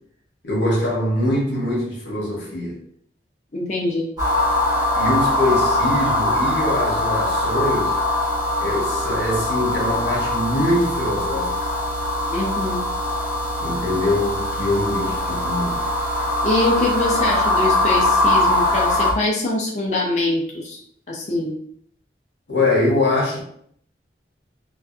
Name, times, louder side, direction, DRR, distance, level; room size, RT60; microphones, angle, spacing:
voice 1, 0.4-2.8 5.0-8.0 8.6-11.7 13.6-15.9 22.5-23.4, left 1 dB, 80° left, 0.9 m, -23 dB
voice 2, 3.5-4.1 12.3-12.8 16.4-20.8 21.1-21.5, left 2 dB, 40° left, 0.5 m, -23 dB
sound 1, 4.2-19.1, left 1 dB, 20° right, 0.9 m, -22 dB
2.5 x 2.3 x 2.4 m
head